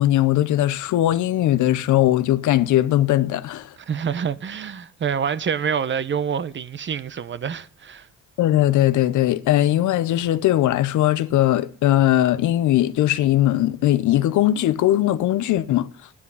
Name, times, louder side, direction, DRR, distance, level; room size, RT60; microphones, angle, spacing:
voice 1, 0.0-3.7 8.4-15.9, left 13 dB, 80° left, 0.7 m, -19 dB
voice 2, 3.8-8.1, right 7 dB, 40° right, 0.7 m, -27 dB
9.7 x 8.5 x 5.5 m
cardioid pair, 90°, 30 cm